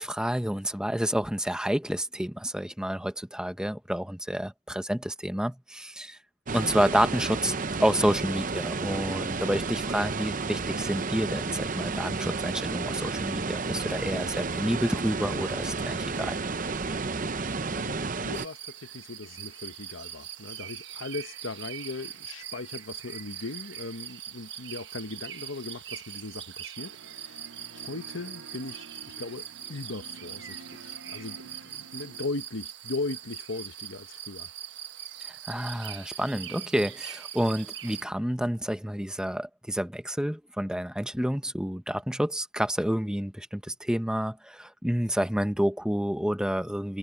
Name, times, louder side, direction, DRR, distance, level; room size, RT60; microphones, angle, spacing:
voice 1, 0.0-6.2 6.5-7.5 7.8-16.4 35.2-47.0, equal, 5° right, 0.8 m, -29 dB
sound 1, 6.5-18.5, right 4 dB, 40° right, 0.7 m, -31 dB
voice 2, 18.2-34.5, left 3 dB, 65° left, 1.1 m, -38 dB
sound 2, 18.3-38.0, right 10 dB, 55° right, 1.4 m, -42 dB
sound 3, 26.8-32.3, right 3 dB, 80° right, 1.9 m, -49 dB
head